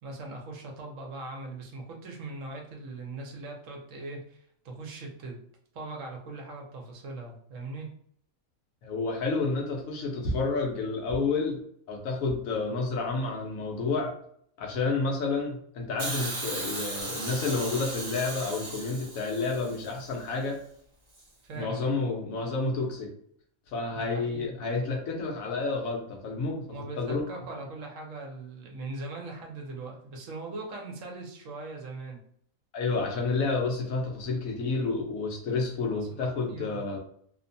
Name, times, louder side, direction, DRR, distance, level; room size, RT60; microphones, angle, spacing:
voice 1, 0.0-5.4 5.7-7.9 21.4-21.9 23.9-24.6 26.7-32.2 35.7-37.0, right 2 dB, 70° right, 0 dB, 1.1 m, -40 dB
voice 2, 8.8-11.6 11.9-14.1 14.6-20.6 21.5-23.1 23.7-26.6 27.0-27.2 32.7-37.0, left 3 dB, 80° left, 1 dB, 1.1 m, -30 dB
Hiss, 16.0-20.1 21.2-21.3, right 2 dB, 45° right, 0.6 m, -36 dB
2.9 x 2.1 x 2.6 m, 0.65 s
omnidirectional pair, 1.4 m